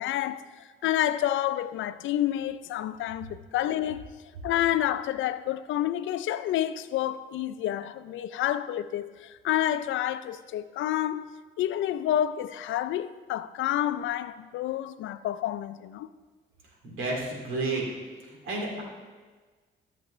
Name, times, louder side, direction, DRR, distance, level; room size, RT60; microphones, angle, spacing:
voice 1, 0.0-4.1 4.4-11.3 11.6-16.1, left 12 dB, 75° left, 0.4 m, -29 dB
voice 2, 16.8-17.8 18.3-18.8, right 2 dB, 85° right, 2.4 m, -31 dB
14.0 x 7.0 x 3.1 m
cardioid pair, 90°, 20 cm